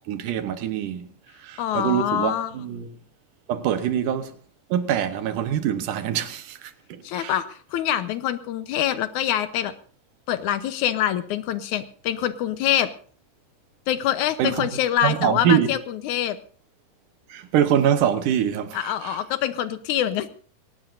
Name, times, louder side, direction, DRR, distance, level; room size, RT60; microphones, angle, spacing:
voice 1, 0.1-1.0 1.4-2.9 3.5-4.3 4.7-7.3 14.4-14.7 15.0-15.7 17.3-19.2, right 9 dB, 85° right, 2.7 m, -24 dB
voice 2, 1.6-2.5 7.0-9.7 10.3-12.9 13.9-16.4 18.7-20.3, left 11 dB, 75° left, 2.2 m, -25 dB
21.5 x 18.0 x 2.6 m
omnidirectional pair, 3.6 m